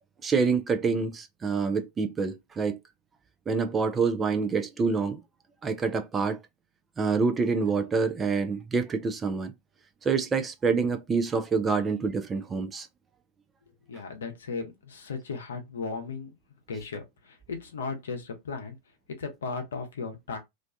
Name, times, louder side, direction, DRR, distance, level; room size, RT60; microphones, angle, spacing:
voice 1, 0.2-2.8 3.5-5.2 5.6-6.4 7.0-9.5 10.0-12.9, right 4 dB, 20° right, 0.4 m, -27 dB
voice 2, 13.9-16.3 16.7-18.8 19.1-20.4, left 4 dB, 65° left, 0.7 m, -36 dB
2.5 x 2.2 x 2.3 m
figure-of-eight pair, 90°, 0 cm